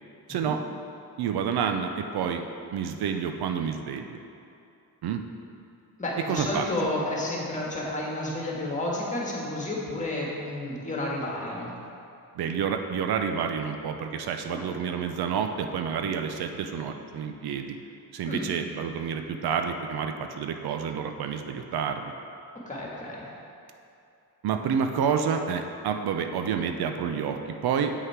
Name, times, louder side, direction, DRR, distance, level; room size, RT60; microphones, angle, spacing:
voice 1, 0.3-0.6 1.2-2.4 2.7-4.2 5.0-5.2 6.3-6.7 12.4-17.8 18.1-22.1 24.4-27.9, right 7 dB, 75° right, 6 dB, 0.6 m, -29 dB
voice 2, 6.0-11.7 14.5-14.6 18.3-18.4 22.6-23.2, left 1 dB, 20° left, -4 dB, 1.7 m, -31 dB
7.7 x 6.5 x 4.6 m, 2.7 s
cardioid pair, 135°, 39 cm